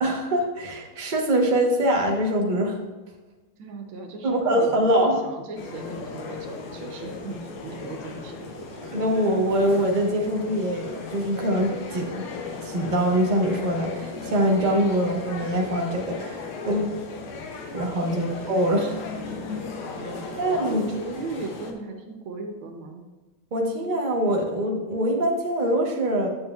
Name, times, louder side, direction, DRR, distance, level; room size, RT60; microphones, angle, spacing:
voice 1, 0.0-2.8 4.2-5.2 8.9-12.3 12.6-16.9 17.7-19.0 20.4-21.0 23.5-26.3, right 1 dB, 55° right, 0 dB, 0.5 m, -24 dB
voice 2, 3.6-8.9 18.1-18.3 19.9-20.3 20.6-23.0, right 3 dB, 75° right, 3 dB, 1.6 m, -37 dB
sound 1, 5.6-21.7, left 4 dB, 85° left, 1.7 m, -36 dB
9.3 x 7.1 x 2.3 m, 1.2 s
omnidirectional pair, 2.3 m